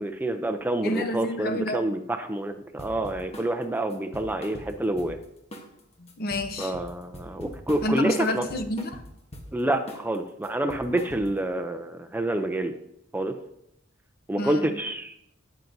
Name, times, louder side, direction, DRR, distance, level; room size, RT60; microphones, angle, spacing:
voice 1, 0.0-5.2 6.6-8.4 9.5-12.7 13.1-13.4 14.3-15.1, right 1 dB, 10° right, 6 dB, 0.4 m, -28 dB
voice 2, 0.8-1.8 6.0-6.7 7.8-9.0 14.4-14.7, left 1 dB, 50° left, 8 dB, 0.8 m, -29 dB
sound 1, 2.8-3.5 3.9-5.3 5.5-5.8 6.1-9.5 9.9-10.2 10.4-11.5, equal, 30° left, 1.1 m, -42 dB
17.0 x 5.8 x 2.7 m, 0.79 s
head